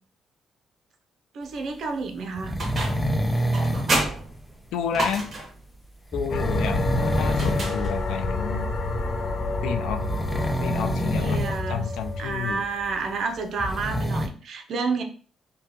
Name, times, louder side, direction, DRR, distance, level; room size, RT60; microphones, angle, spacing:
voice 1, 1.3-2.6 11.2-11.9 12.2-15.0, right 4 dB, 65° right, 5 dB, 0.6 m, -30 dB
sound 1, 2.4-4.0 6.1-7.7 8.0-8.2 10.0-11.6 11.9-12.0 13.4-14.3, equal, 5° left, 0.6 m, -27 dB
sound 2, 2.6-3.1 3.5-5.6 7.3-8.2, right 2 dB, 45° right, 1.4 m, -29 dB
voice 2, 4.7-5.3 6.1-8.7 9.6-10.1 10.6-12.6, left 8 dB, 85° left, 7 dB, 0.4 m, -30 dB
sound 3, 6.3-12.9, left 2 dB, 50° left, 0.7 m, -28 dB
5.1 x 2.2 x 2.9 m, 0.41 s
cardioid pair, 90°, 0 cm